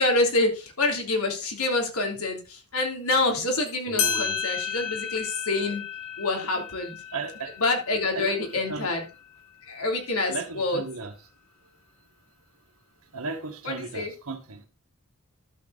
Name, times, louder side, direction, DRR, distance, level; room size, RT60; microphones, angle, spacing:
voice 1, 0.0-5.8 6.2-7.0 7.6-9.1 9.7-10.8 13.6-14.1, left 2 dB, 85° left, 3.2 m, -26 dB
sound 1, 3.7-3.8 4.0-9.1, left 7 dB, 65° left, 2.7 m, -33 dB
voice 2, 3.9-4.4 6.6-6.7 7.1-7.5 8.2-8.9 10.3-11.1 13.1-14.6, right 4 dB, 75° right, 1.9 m, -35 dB
11.5 x 7.1 x 4.1 m
head